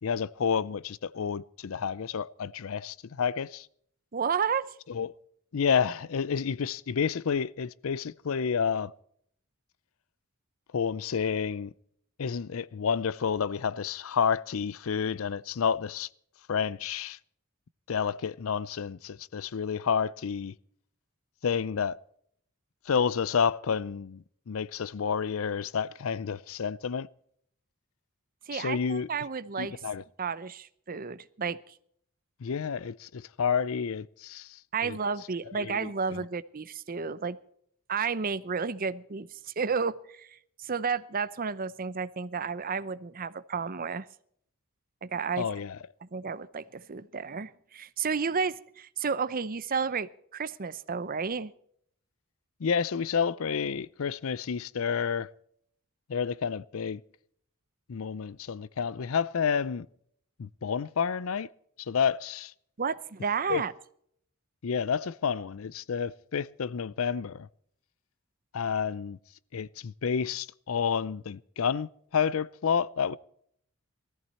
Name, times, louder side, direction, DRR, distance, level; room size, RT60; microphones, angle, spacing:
voice 1, 0.0-3.7 4.9-5.1 5.5-8.9 10.7-11.7 12.2-16.1 16.5-17.2 17.9-20.5 21.4-22.0 22.9-27.1 28.5-29.1 29.6-30.0 32.4-35.0 35.5-36.2 45.4-45.8 52.6-55.3 56.1-57.0 57.9-59.9 60.4-61.5 61.8-62.5 63.5-63.6 64.6-67.5 68.5-69.2 69.5-73.2, left 6 dB, 70° left, 0.5 m, -30 dB
voice 2, 4.1-4.7 28.5-29.8 30.2-31.7 34.7-37.4 37.9-44.1 45.0-45.6 46.0-51.5 62.8-63.7, right 5 dB, 40° right, 0.7 m, -32 dB
19.0 x 14.0 x 4.2 m
head